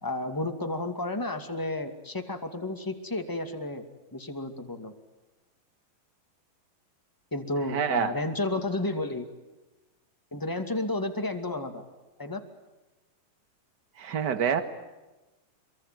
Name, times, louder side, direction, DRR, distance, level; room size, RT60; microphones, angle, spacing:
voice 1, 0.0-3.8 4.1-4.9 7.3-9.3 10.3-11.8 12.2-12.4, left 2 dB, 10° left, 5 dB, 1.5 m, -32 dB
voice 2, 7.7-8.1 14.0-14.6, right 7 dB, 35° right, 9 dB, 1.9 m, -26 dB
27.0 x 23.5 x 9.3 m, 1.1 s
omnidirectional pair, 4.3 m